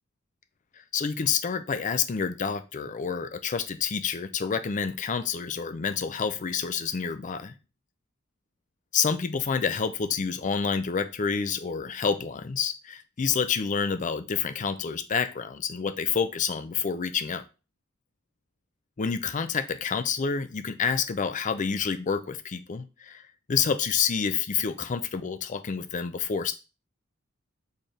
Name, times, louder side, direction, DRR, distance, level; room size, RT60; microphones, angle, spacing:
voice 1, 0.9-7.5 8.9-17.4 19.0-26.5, left 6 dB, 35° left, 10 dB, 0.4 m, -28 dB
4.3 x 3.7 x 3.3 m, 0.31 s
head